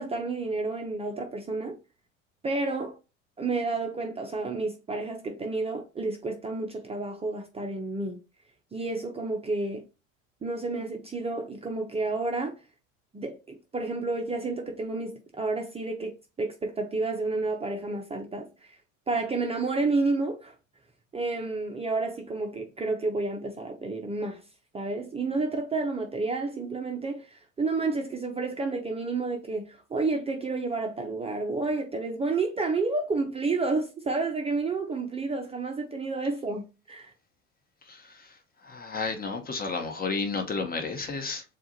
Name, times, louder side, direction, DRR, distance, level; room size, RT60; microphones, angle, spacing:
voice 1, 0.0-1.8 2.4-3.0 3.4-8.2 8.7-9.8 10.4-12.6 13.1-18.8 19.1-20.5 21.1-24.4 24.7-37.1, right 3 dB, 15° right, 0.7 m, -30 dB
voice 2, 37.9-38.3 38.6-41.4, left 4 dB, 25° left, 1.1 m, -32 dB
7.1 x 2.5 x 2.9 m
hypercardioid pair, 80°, 38 cm